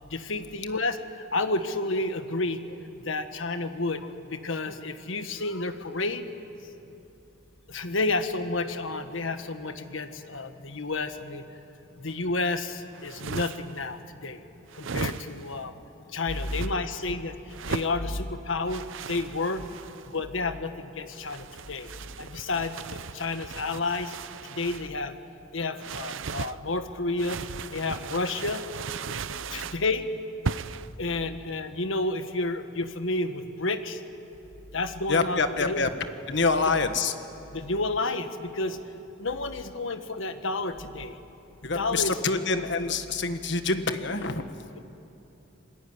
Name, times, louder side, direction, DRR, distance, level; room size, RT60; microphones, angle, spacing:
voice 1, 0.1-1.0 1.3-6.3 7.7-11.4 12.0-14.4 14.7-15.7 16.1-19.6 20.1-21.9 22.2-24.1 24.5-25.1 25.5-27.4 27.7-28.6 29.5-30.1 31.0-34.0 34.7-35.8 36.7-36.8 37.5-38.8 39.2-41.2 41.7-42.1, left 3 dB, 75° left, 8 dB, 1.5 m, -30 dB
sound 1, 12.9-13.8 14.7-15.6 16.3-16.7 17.5-18.0 18.7-20.1 21.1-24.9 25.8-26.6 27.2-29.8 30.4-30.9, right 5 dB, 75° right, 0.6 m, -37 dB
voice 2, 16.3-16.6 18.0-18.2 21.7-22.2 35.1-35.9 36.3-37.1 40.8-40.9 41.6-44.4, left 3 dB, 60° left, 9 dB, 1.5 m, -27 dB
26.5 x 21.0 x 9.7 m, 2.9 s
head